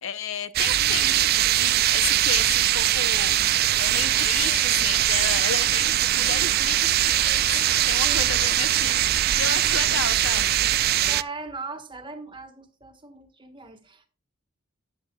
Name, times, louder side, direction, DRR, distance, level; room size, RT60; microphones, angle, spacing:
voice 1, 0.0-10.6, left 7 dB, 65° left, 0.7 m, -33 dB
sound 1, 0.5-11.2, right 13 dB, 45° right, 0.4 m, -21 dB
voice 2, 5.3-5.9 8.0-8.5 10.8-14.1, right 3 dB, 20° right, 1.4 m, -40 dB
13.5 x 9.2 x 2.3 m
head